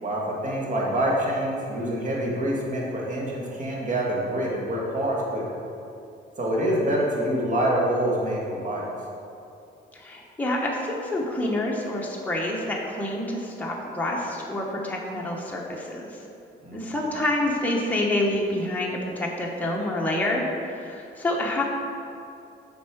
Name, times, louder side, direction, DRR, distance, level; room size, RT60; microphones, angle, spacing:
voice 1, 0.0-5.4 6.4-8.9 16.6-16.9, right 1 dB, 40° right, -3 dB, 1.6 m, -26 dB
voice 2, 9.9-16.2 16.7-21.6, left 1 dB, 10° left, -3 dB, 1.0 m, -27 dB
6.9 x 4.5 x 4.6 m, 2.6 s
cardioid pair, 90°, 20 cm